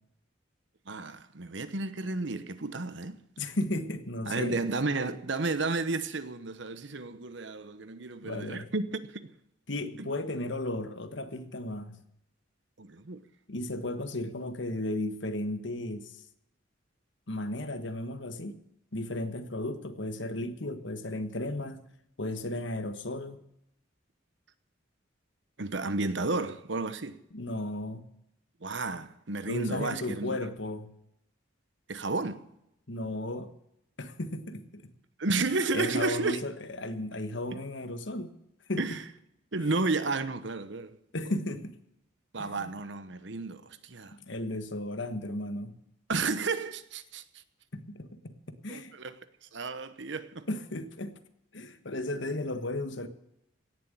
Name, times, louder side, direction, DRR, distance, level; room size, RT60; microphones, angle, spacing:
voice 1, 0.9-3.2 4.2-9.0 10.0-10.1 12.8-13.2 25.6-27.2 28.6-30.4 31.9-32.4 35.2-36.4 38.8-39.0 39.5-41.0 42.3-44.1 46.1-47.2 48.7-49.1 49.5-50.5, right 3 dB, 65° right, 1.0 m, -32 dB
voice 2, 3.4-4.6 8.2-8.7 9.7-12.0 13.5-16.2 17.3-18.6 18.9-21.8 22.2-23.4 27.3-28.0 29.5-30.9 32.9-33.5 34.0-34.9 35.4-35.5 35.7-38.3 38.7-39.0 39.5-39.7 41.1-41.7 42.4-42.7 44.1-45.8 47.7-48.4 48.6-48.9 50.5-51.1 51.5-53.1, left 1 dB, 65° left, 1.4 m, -35 dB
17.5 x 7.5 x 8.9 m
head